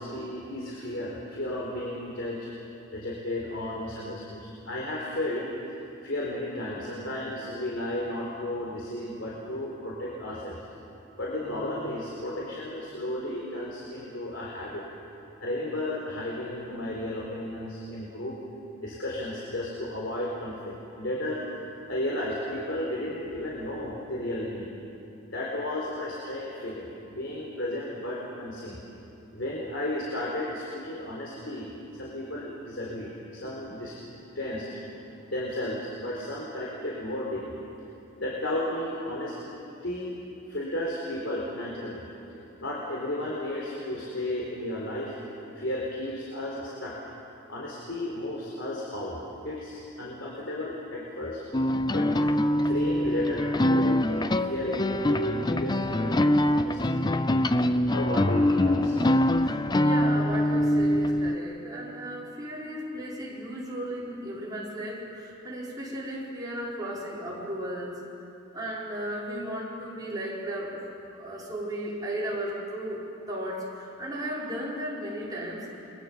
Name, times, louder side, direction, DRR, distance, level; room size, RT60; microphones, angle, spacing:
voice 1, 0.0-2.5 2.9-5.5 6.0-10.6 11.2-14.8 15.4-18.4 18.8-24.7 25.3-28.8 29.3-33.9 34.3-34.7 35.3-37.6 38.2-39.4 39.8-40.2 40.5-42.1 42.6-45.2 45.5-46.9 47.5-51.4 51.9-52.3 52.6-57.0 57.9-59.0, left 1 dB, 60° left, -4 dB, 4.3 m, -33 dB
sound 1, 51.5-61.4, left 1 dB, 20° left, 0.6 m, -24 dB
voice 2, 59.4-68.0 68.5-70.8 71.1-75.7, right 1 dB, 20° right, -5 dB, 5.4 m, -35 dB
29.5 x 22.5 x 7.5 m, 2.8 s
head